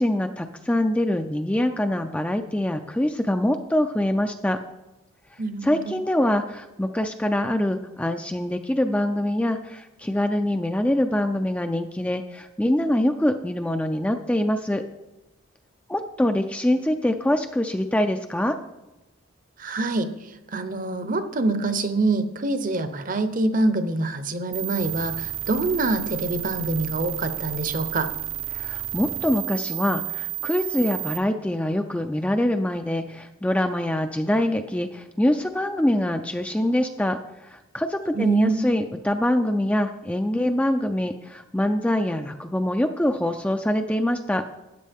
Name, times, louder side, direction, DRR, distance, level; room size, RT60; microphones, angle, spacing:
voice 1, 0.0-4.6 5.6-14.8 15.9-18.6 28.5-44.4, left 1 dB, 5° left, 6 dB, 0.3 m, -24 dB
voice 2, 5.4-5.9 19.6-20.1 20.5-28.1 38.1-38.6, right 2 dB, 40° right, 10 dB, 0.7 m, -25 dB
sound 1, 24.5-31.2, right 14 dB, 70° right, 0.8 m, -31 dB
13.0 x 9.3 x 3.5 m, 1.0 s
head